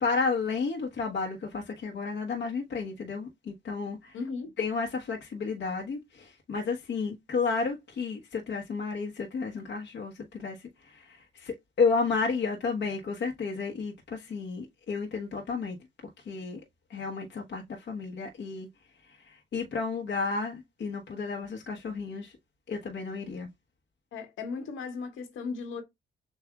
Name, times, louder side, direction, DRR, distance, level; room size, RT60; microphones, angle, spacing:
voice 1, 0.0-4.2 4.6-15.8 16.2-16.6 16.9-18.7 19.0-22.4 22.7-23.5, left 4 dB, 60° left, 1.2 m, -32 dB
voice 2, 4.1-4.5 24.1-25.8, left 4 dB, 80° left, 1.6 m, -36 dB
7.1 x 2.7 x 2.4 m
cardioid pair, 90°, 20 cm